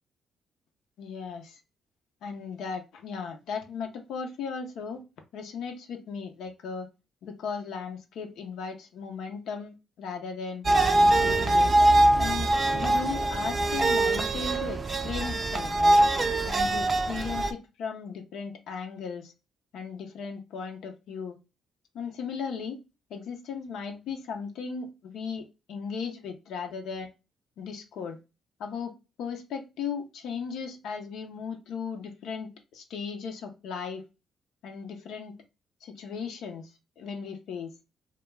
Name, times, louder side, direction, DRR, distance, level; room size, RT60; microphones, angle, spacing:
voice 1, 1.0-1.6 2.2-5.0 5.3-6.9 7.2-10.6 11.0-11.8 12.2-16.0 16.4-19.3 19.7-21.4 21.9-22.8 23.1-27.1 27.6-28.2 28.6-28.9 29.2-34.0 34.6-35.3 35.8-36.7 37.0-37.7, left 6 dB, 80° left, 4 dB, 0.5 m, -36 dB
sound 1, 10.6-17.5, right 1 dB, 35° right, 0.4 m, -23 dB
2.3 x 2.1 x 3.1 m, 0.28 s
cardioid pair, 90°, 0 cm